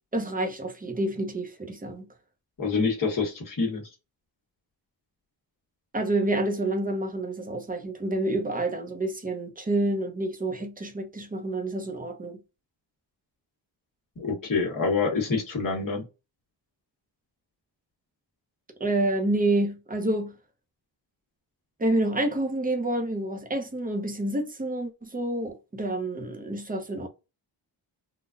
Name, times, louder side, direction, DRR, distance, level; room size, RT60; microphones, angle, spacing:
voice 1, 0.1-2.1 5.9-12.4 18.8-20.3 21.8-27.1, right 1 dB, 20° right, 0.8 m, -28 dB
voice 2, 2.6-3.9 14.2-16.0, left 4 dB, 45° left, 1.4 m, -26 dB
3.9 x 2.3 x 2.4 m
wide cardioid pair, 110°, 46 cm